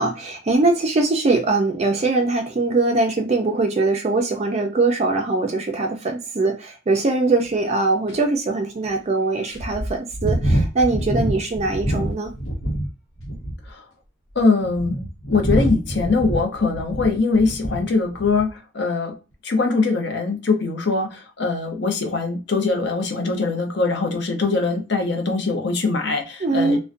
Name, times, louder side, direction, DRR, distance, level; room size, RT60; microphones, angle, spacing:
voice 1, 0.0-12.3 26.4-26.8, right 3 dB, 35° right, 4 dB, 0.4 m, -21 dB
sound 1, 7.4-7.5 8.1-8.2 8.8-8.9 9.5-12.9 13.2-13.7 14.4-17.9 18.2-18.5, right 1 dB, 85° left, 0.9 m, -25 dB
voice 2, 14.4-19.1 19.4-26.8, left 3 dB, 60° left, 3 dB, 0.6 m, -22 dB
2.5 x 2.1 x 2.4 m, 0.31 s
head